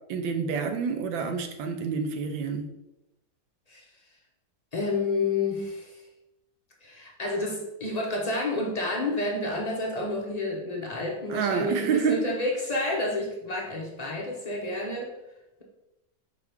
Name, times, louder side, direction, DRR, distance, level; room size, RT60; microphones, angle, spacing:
voice 1, 0.1-2.7 11.3-12.2, right 6 dB, 75° right, 7 dB, 1.4 m, -28 dB
voice 2, 4.7-6.0 6.8-15.1, left 2 dB, 45° left, -2 dB, 0.5 m, -30 dB
5.9 x 4.8 x 3.4 m, 0.93 s
omnidirectional pair, 2.1 m